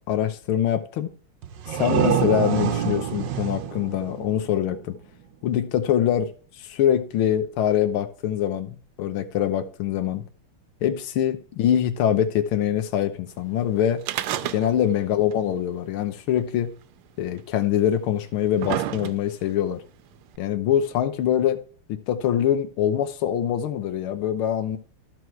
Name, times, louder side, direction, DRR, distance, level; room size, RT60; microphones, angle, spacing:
voice 1, 0.1-1.1 1.7-4.9 5.4-6.3 6.6-10.2 10.8-14.0 14.5-16.7 17.2-19.8 20.4-21.6 21.9-24.8, left 10 dB, 80° left, 1.7 m, -24 dB
sound 1, 1.4-5.0, right 9 dB, 70° right, 1.3 m, -26 dB
sound 2, 14.0-15.0 15.3-15.4 16.4-16.5 17.4-17.5 18.2-19.5 20.4-20.5, right 12 dB, 90° right, 1.5 m, -29 dB
13.5 x 4.7 x 4.5 m
omnidirectional pair, 2.4 m